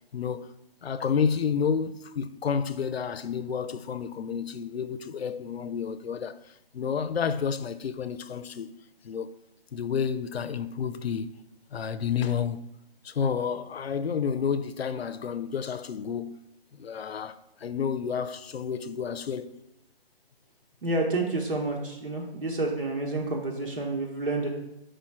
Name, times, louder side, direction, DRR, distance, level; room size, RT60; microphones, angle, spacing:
voice 1, 0.1-0.5 0.8-6.4 6.7-8.7 9.0-9.3 9.7-11.3 11.7-12.6 13.0-16.4 16.7-19.5, left 7 dB, 80° left, 0.6 m, -30 dB
voice 2, 20.8-24.5, right 2 dB, 60° right, 1.3 m, -29 dB
5.1 x 4.4 x 6.0 m
hypercardioid pair, 180°, 30 cm